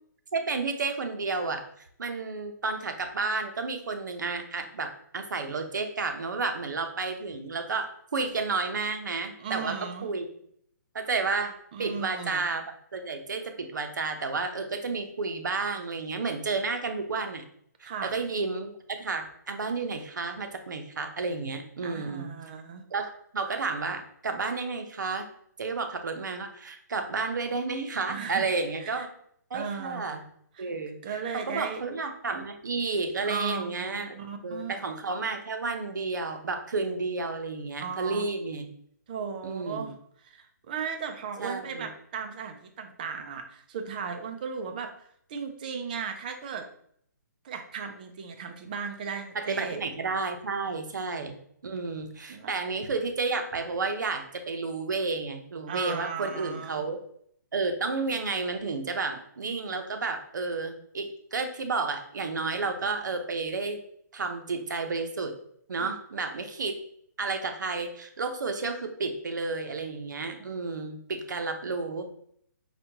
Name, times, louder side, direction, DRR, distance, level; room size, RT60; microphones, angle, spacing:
voice 1, 0.3-1.6 2.0-9.8 10.0-10.3 10.9-17.4 17.8-22.3 22.9-25.3 25.6-29.1 29.5-30.2 30.6-34.2 34.4-38.7 39.4-39.9 41.4-41.9 49.3-51.3 51.6-57.0 57.5-63.8 64.1-65.3 65.7-66.8 67.2-72.1, right 4 dB, 85° right, 6 dB, 0.6 m, -31 dB
voice 2, 9.4-10.1 11.7-12.5 17.8-18.1 21.8-22.8 28.1-28.5 28.8-29.1 29.5-30.2 30.5-30.7 31.0-31.8 33.2-34.8 37.8-38.3 39.1-46.7 47.4-49.8 51.3-51.4 52.3-52.5 55.7-56.9 65.8-65.9, right 6 dB, 30° right, 6 dB, 0.4 m, -36 dB
4.2 x 2.2 x 2.8 m, 0.66 s
hypercardioid pair, 165°, 10 cm